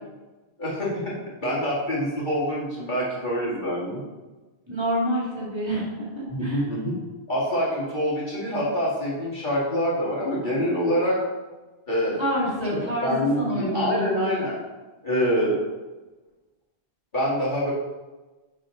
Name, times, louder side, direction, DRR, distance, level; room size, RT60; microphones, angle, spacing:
voice 1, 0.6-1.1 1.4-4.0 6.3-6.9 7.3-11.2 11.9-12.2 13.0-14.6 15.0-15.6 17.1-17.7, equal, 50° left, -7 dB, 2.2 m, -25 dB
voice 2, 4.7-6.6 12.2-14.3, equal, 25° right, -6 dB, 2.1 m, -27 dB
10.0 x 4.0 x 3.8 m, 1.2 s
omnidirectional pair, 1.1 m